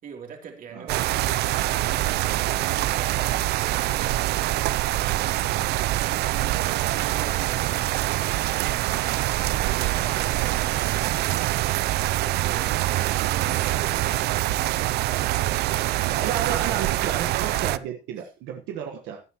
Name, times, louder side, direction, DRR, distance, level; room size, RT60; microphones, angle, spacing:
voice 1, 0.0-6.5 6.8-9.1 9.5-14.0 14.4-16.5, right 7 dB, 55° right, 3.1 m, -44 dB
sound 1, 0.9-17.8, right 16 dB, 75° right, 0.5 m, -25 dB
voice 2, 16.0-19.2, right 8 dB, 90° right, 1.4 m, -32 dB
17.0 x 9.6 x 3.0 m
cardioid pair, 110°, 17 cm